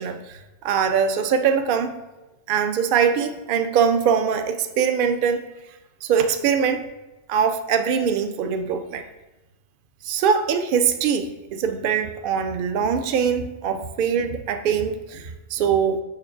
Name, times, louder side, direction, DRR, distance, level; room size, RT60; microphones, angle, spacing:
voice 1, 0.0-2.0 2.5-5.4 6.0-6.8 7.3-9.0 10.0-16.0, right 7 dB, 60° right, 8 dB, 0.6 m, -22 dB
7.0 x 3.2 x 5.5 m, 1.1 s
omnidirectional pair, 1.2 m